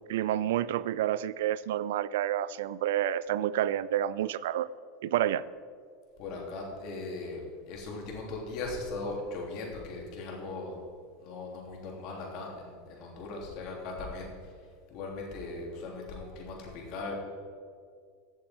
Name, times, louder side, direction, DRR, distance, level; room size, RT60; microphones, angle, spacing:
voice 1, 0.1-4.7 5.0-5.4, right 11 dB, 80° right, 18 dB, 0.3 m, -29 dB
voice 2, 6.2-10.8 11.2-14.5 14.9-17.2, left 3 dB, 55° left, -1 dB, 3.2 m, -39 dB
15.0 x 7.3 x 4.6 m, 2.1 s
supercardioid pair, 130°, 0 cm